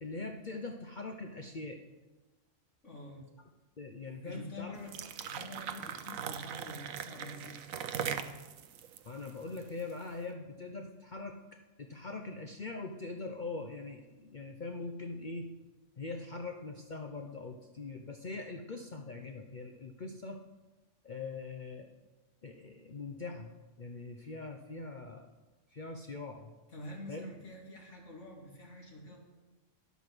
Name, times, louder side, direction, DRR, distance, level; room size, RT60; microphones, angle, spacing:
voice 1, 0.0-1.8 3.8-4.8 9.0-11.4 11.8-15.5 16.0-20.4 21.0-21.9 22.4-23.5 23.8-25.3 25.7-26.5 27.1-27.3, left 3 dB, 45° left, 4 dB, 0.8 m, -42 dB
voice 2, 2.8-3.2 4.2-8.3 26.7-29.2, left 1 dB, 65° left, -1 dB, 2.7 m, -48 dB
sound 1, 4.8-10.0, right 8 dB, 85° right, 1.1 m, -40 dB
11.5 x 8.3 x 6.1 m, 1.1 s
omnidirectional pair, 1.4 m